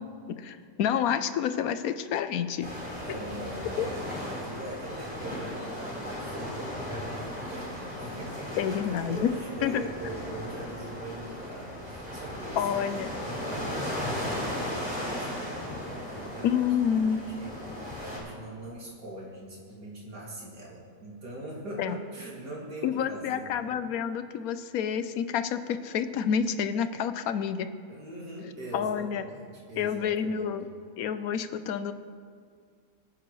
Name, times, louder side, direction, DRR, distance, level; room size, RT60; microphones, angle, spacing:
voice 1, 0.4-2.7 3.8-3.9 8.6-9.3 9.6-9.8 12.6-13.1 16.4-17.2 21.8-22.0 22.8-27.7 28.7-29.2 29.8-30.7 31.0-31.9, left 8 dB, 65° left, 11 dB, 1.0 m, -28 dB
sound 1, 2.6-18.2, left 1 dB, 5° right, 3.9 m, -36 dB
voice 2, 3.0-16.6 16.9-17.6 18.0-23.8 27.9-30.5, right 1 dB, 75° right, -4 dB, 3.2 m, -42 dB
22.0 x 10.0 x 3.2 m, 2.1 s
omnidirectional pair, 1.8 m